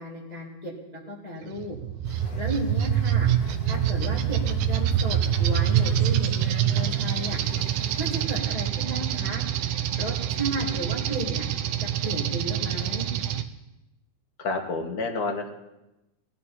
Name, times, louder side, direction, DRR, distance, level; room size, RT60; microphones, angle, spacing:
voice 1, 0.0-1.8 2.4-3.3 3.7-7.4 8.0-9.4 9.9-11.4 12.0-13.1, right 1 dB, 15° left, -4 dB, 1.4 m, -34 dB
sound 1, 1.6-13.4, right 9 dB, 80° right, 2.2 m, -26 dB
sound 2, 2.0-8.3, left 7 dB, 70° left, 2.3 m, -44 dB
voice 2, 14.4-15.5, left 3 dB, 45° left, 3 dB, 1.3 m, -29 dB
19.0 x 12.5 x 4.3 m, 0.96 s
omnidirectional pair, 3.6 m